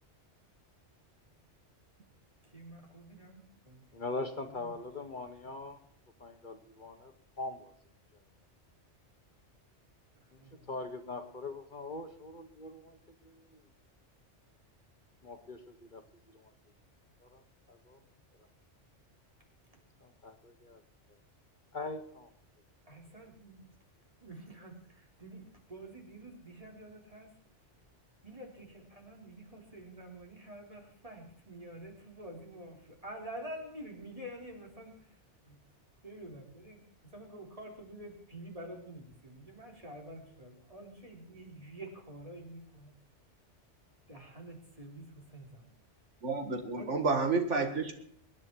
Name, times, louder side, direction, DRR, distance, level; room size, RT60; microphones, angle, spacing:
voice 1, 2.4-3.8 4.1-4.8 5.4-5.6 10.4-10.7 22.9-23.7 24.2-27.3 28.2-35.6 36.0-42.9 44.1-45.7 46.7-47.0, right 1 dB, 30° right, 1 dB, 3.8 m, -48 dB
voice 2, 3.9-5.8 6.2-7.7 10.3-10.4 10.7-13.0 13.2-13.6 15.2-16.5 17.2-17.4 17.7-18.0 20.0-20.8 21.1-21.2 21.7-22.3, left 2 dB, 45° left, 6 dB, 1.4 m, -42 dB
voice 3, 46.2-47.9, right 4 dB, 80° right, 6 dB, 2.1 m, -30 dB
23.5 x 10.0 x 4.5 m, 0.65 s
omnidirectional pair, 1.2 m